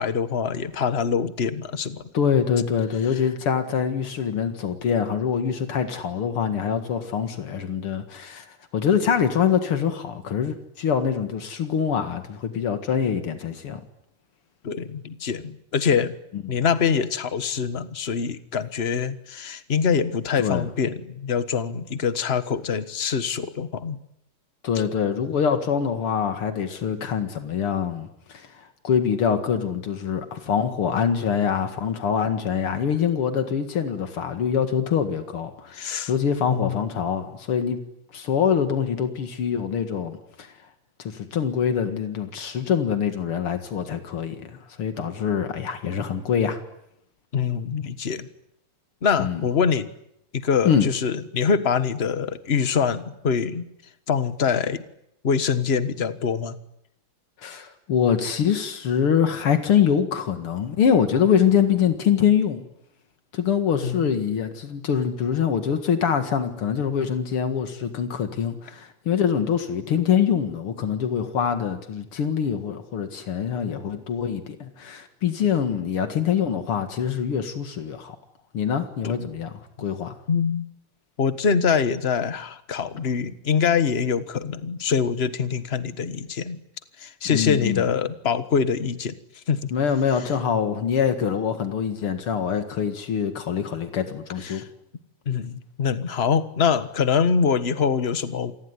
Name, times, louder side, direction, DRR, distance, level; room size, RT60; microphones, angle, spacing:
voice 1, 0.0-2.0 14.6-16.1 16.5-24.0 35.7-36.1 36.5-36.8 47.3-48.3 49.0-49.9 50.3-53.6 54.1-54.8 55.2-56.6 63.8-64.1 79.0-79.3 80.3-80.7 81.2-86.6 87.0-89.1 89.5-89.7 94.4-94.7 95.2-98.5, left 6 dB, 30° left, 12 dB, 1.4 m, -24 dB
voice 2, 2.1-13.8 16.3-16.4 20.4-20.7 24.6-37.8 38.1-40.5 41.0-46.6 49.2-49.4 50.6-50.9 57.4-62.6 63.3-78.2 78.5-79.5 79.8-80.1 87.2-87.9 89.7-94.6, left 7 dB, 80° left, 8 dB, 2.7 m, -24 dB
27.5 x 20.5 x 9.8 m, 0.77 s
omnidirectional pair, 2.4 m